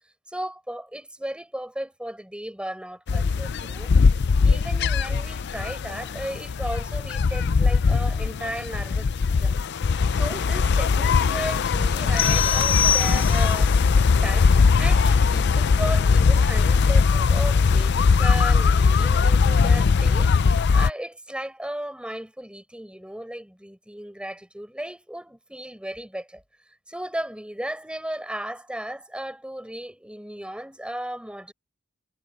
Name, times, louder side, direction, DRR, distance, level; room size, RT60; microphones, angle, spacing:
voice 1, 0.3-3.9 4.4-9.1 9.4-9.6 9.9-26.4 26.9-31.5, right 1 dB, 5° right, 5.7 m, -35 dB
sound 1, 3.1-20.9, left 5 dB, 55° left, 0.5 m, -20 dB
sound 2, 12.2-13.7, left 7 dB, 70° left, 1.0 m, -24 dB
head